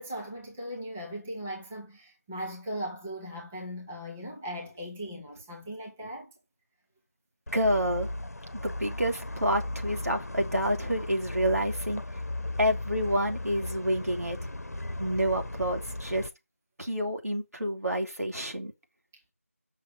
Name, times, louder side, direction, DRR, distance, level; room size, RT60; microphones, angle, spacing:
voice 1, 0.0-6.3, equal, 5° right, 0.8 m, -38 dB
sound 1, 7.5-16.3, left 2 dB, 90° left, 0.9 m, -36 dB
voice 2, 7.5-8.1 8.6-12.0 12.6-14.4 15.0-16.3 16.8-18.7, equal, 85° right, 3.1 m, -28 dB
7.8 x 6.3 x 5.3 m
figure-of-eight pair, 175°, 8 cm